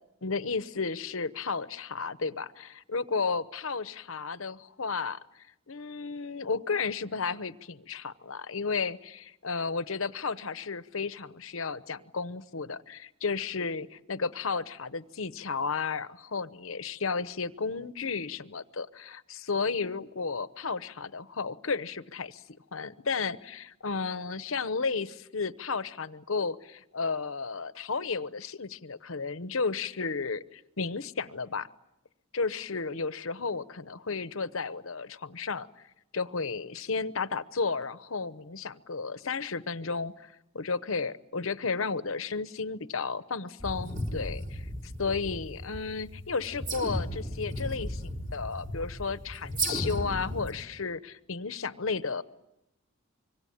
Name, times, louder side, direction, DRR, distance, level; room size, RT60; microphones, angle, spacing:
voice 1, 0.2-22.4 22.7-31.7 32.3-35.7 36.1-44.7 45.0-52.2, left 4 dB, 70° left, 14 dB, 0.9 m, -33 dB
sound 1, 43.6-50.5, right 1 dB, 40° right, 3.9 m, -35 dB
25.5 x 24.0 x 8.8 m, 0.87 s
head